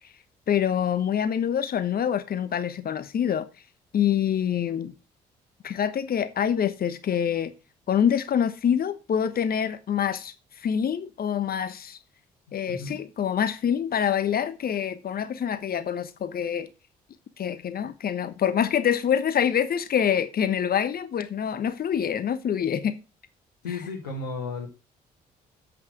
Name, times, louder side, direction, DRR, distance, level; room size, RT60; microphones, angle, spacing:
voice 1, 0.5-3.5 3.9-4.9 5.6-7.5 7.9-12.0 12.5-16.7 17.4-23.0, left 8 dB, 50° left, 1.1 m, -26 dB
voice 2, 12.7-13.0 23.6-24.7, left 3 dB, 85° left, 1.8 m, -33 dB
8.1 x 5.8 x 6.1 m
hypercardioid pair, 50°, 20 cm